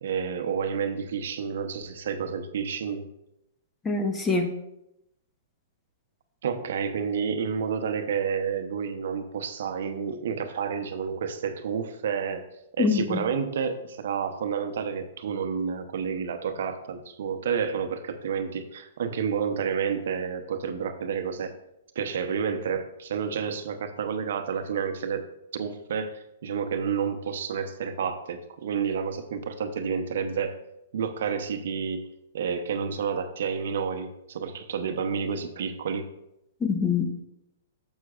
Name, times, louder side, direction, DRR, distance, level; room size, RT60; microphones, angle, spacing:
voice 1, 0.0-3.1 6.4-12.5 12.8-21.5 21.9-25.2 25.5-30.6 30.9-32.1 32.3-36.1, right 6 dB, 65° right, 8 dB, 0.7 m, -30 dB
voice 2, 3.8-4.5 12.8-13.2 36.6-37.2, left 4 dB, 15° left, 5 dB, 0.9 m, -25 dB
9.8 x 7.2 x 2.4 m, 0.85 s
hypercardioid pair, 130°, 0 cm